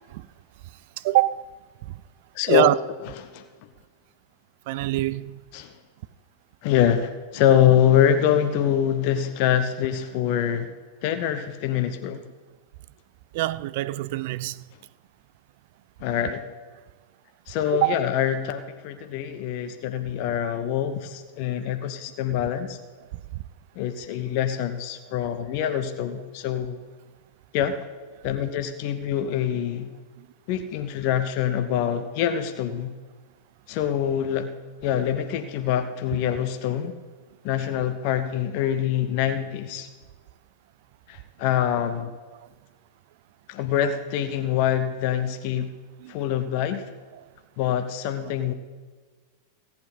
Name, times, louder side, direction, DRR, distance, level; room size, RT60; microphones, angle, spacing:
voice 1, 1.0-1.4 2.5-2.7 4.7-5.4 13.3-14.6 17.7-18.0 45.6-45.7 46.0-46.1, right 17 dB, 50° right, 0.4 m, -24 dB
voice 2, 2.3-2.7 3.0-3.4 5.5-5.7 6.6-10.7 11.0-12.2 16.0-16.5 17.5-22.8 23.8-26.8 27.5-27.8 28.2-29.9 30.5-32.9 33.7-34.5 34.8-36.9 37.4-39.9 41.1-42.1 43.5-45.7 46.1-46.9 47.6-48.5, left 10 dB, 45° left, 0.8 m, -25 dB
16.5 x 8.6 x 4.1 m
figure-of-eight pair, 90°, 0 cm